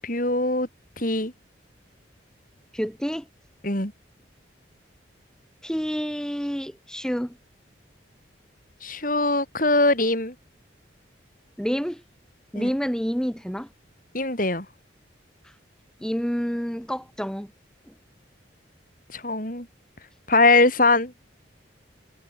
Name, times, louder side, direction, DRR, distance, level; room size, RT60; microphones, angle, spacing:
voice 1, 0.0-0.7 1.0-1.3 3.6-3.9 8.8-10.3 12.6-12.7 14.1-14.7 19.1-19.7 20.3-21.1, left 2 dB, 45° left, 6.9 m, -21 dB
voice 2, 2.7-3.3 5.6-7.4 11.6-12.0 12.5-13.7 15.4-15.5 16.0-17.5 17.9-18.0, equal, 5° left, 2.4 m, -28 dB
head